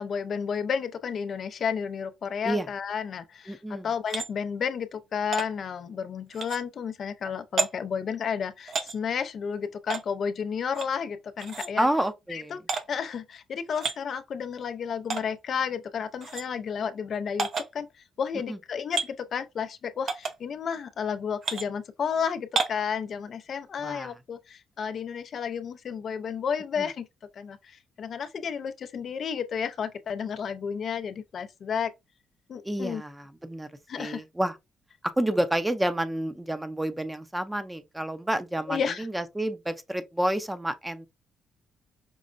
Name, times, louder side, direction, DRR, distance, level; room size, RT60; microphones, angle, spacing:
voice 1, 0.0-11.9 12.3-12.6 12.9-27.1 27.3-31.9 32.5-33.0 33.9-34.2 38.7-39.1, left 7 dB, 55° left, 0.4 m, -32 dB
voice 2, 3.5-3.9 11.8-12.6 18.5-18.6 23.8-24.1 32.6-33.7 34.0-34.6 35.2-41.1, right 1 dB, 10° right, 0.6 m, -29 dB
sound 1, 4.1-4.3 5.3-5.5 6.3-6.6 7.6-7.7 8.7-9.0 9.9-10.0 10.7-10.9 11.4-11.7 12.7-12.8 13.7-14.0 15.1-15.2 16.2-16.4 17.4-17.7 18.9-19.1 20.1-20.3 21.4-21.7 22.6-22.8, right 5 dB, 55° right, 0.7 m, -30 dB
5.2 x 2.1 x 2.5 m
cardioid pair, 90°, 0 cm